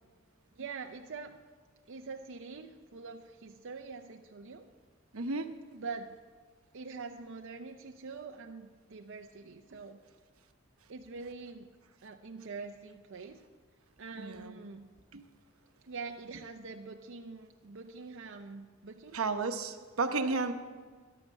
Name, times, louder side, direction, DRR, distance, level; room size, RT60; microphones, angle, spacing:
voice 1, 0.5-1.4 1.9-4.7 5.7-6.2 6.7-10.0 10.9-11.7 12.0-13.4 14.0-14.9 15.8-19.3 20.0-20.4, right 4 dB, 60° right, 4 dB, 0.6 m, -44 dB
voice 2, 5.1-5.5 14.2-14.6 15.1-15.2 19.1-20.5, right 3 dB, 85° right, 8 dB, 0.9 m, -32 dB
11.5 x 11.0 x 7.6 m, 1.5 s
head